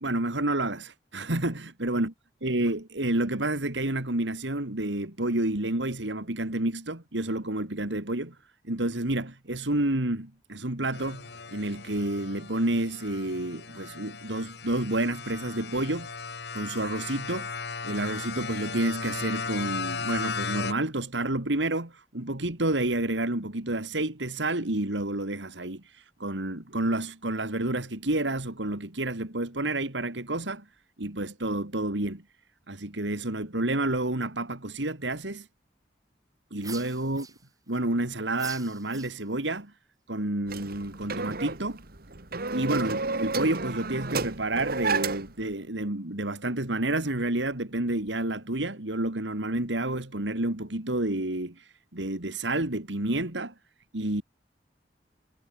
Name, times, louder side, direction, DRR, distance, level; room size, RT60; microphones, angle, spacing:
voice 1, 0.0-2.1 2.4-8.4 8.6-17.5 17.8-30.7 31.0-32.2 32.7-35.5 36.5-37.3 37.7-39.7 40.1-41.8 42.5-53.5 53.9-54.2, right 1 dB, 85° right, 2.9 m, -29 dB
sound 1, 10.9-20.7, left 5 dB, 65° left, 1.9 m, -36 dB
sound 2, 36.6-37.8 38.3-39.5, right 5 dB, 20° right, 5.4 m, -44 dB
sound 3, 40.5-45.4, right 3 dB, 55° right, 2.1 m, -31 dB
head